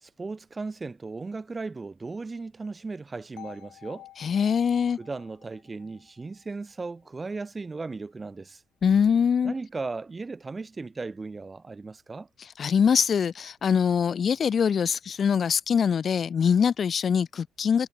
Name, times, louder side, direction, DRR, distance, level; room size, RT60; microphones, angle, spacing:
voice 1, 0.0-4.1 5.0-8.6 9.4-12.3, right 3 dB, 25° right, 2.8 m, -36 dB
sound 1, 3.4-7.3, left 15 dB, 90° left, 2.8 m, -50 dB
voice 2, 4.2-5.0 8.8-9.5 12.6-17.9, left 7 dB, 50° left, 0.8 m, -23 dB
cardioid pair, 90°, 0 cm